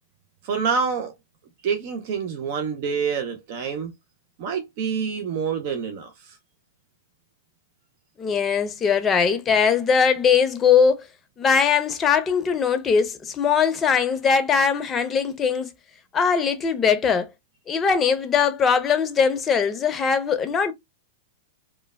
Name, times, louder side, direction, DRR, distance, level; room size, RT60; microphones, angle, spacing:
voice 1, 0.4-1.2 1.6-3.9 4.4-6.4, right 6 dB, 50° right, 0.5 m, -27 dB
voice 2, 8.2-11.0 11.4-15.7 16.1-17.3 17.7-20.7, left 6 dB, 20° left, 0.6 m, -20 dB
3.0 x 2.1 x 2.2 m
hypercardioid pair, 110°, 0 cm